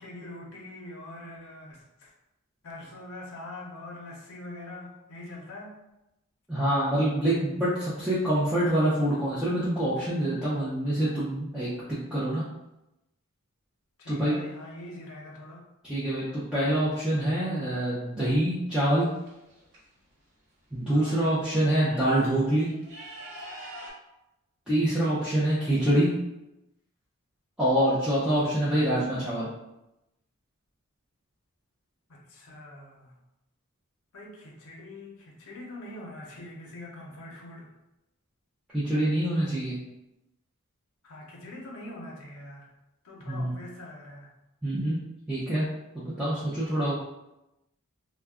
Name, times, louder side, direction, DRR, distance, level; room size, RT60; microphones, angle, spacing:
voice 1, 0.0-2.1 2.6-5.8 14.0-15.6 20.9-21.4 32.1-33.2 34.1-37.7 41.0-42.7 43.0-44.3, left 1 dB, 75° left, -2 dB, 0.6 m, -43 dB
voice 2, 6.5-12.4 14.1-14.4 15.8-19.1 20.7-22.7 24.7-26.1 27.6-29.5 38.7-39.8 43.3-43.5 44.6-45.0 45.3-45.7 45.9-47.0, right 1 dB, 5° right, -11 dB, 0.5 m, -25 dB
sound 1, 18.7-19.8 20.9-21.0 21.3-23.9, right 1 dB, 55° right, 0.9 m, -45 dB
2.3 x 2.2 x 3.5 m, 0.93 s
head